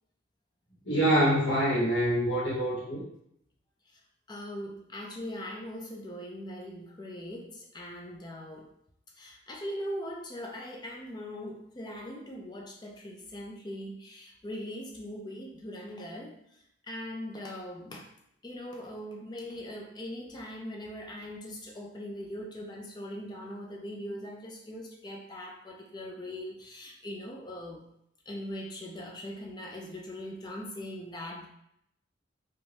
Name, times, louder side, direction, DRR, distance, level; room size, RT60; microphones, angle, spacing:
voice 1, 0.9-3.0, right 1 dB, 70° left, -7 dB, 1.0 m, -25 dB
voice 2, 4.3-8.7 9.2-16.4 16.9-18.1 18.4-27.8 28.3-31.5, equal, 20° left, 0 dB, 0.4 m, -40 dB
2.6 x 2.2 x 3.1 m, 0.74 s
head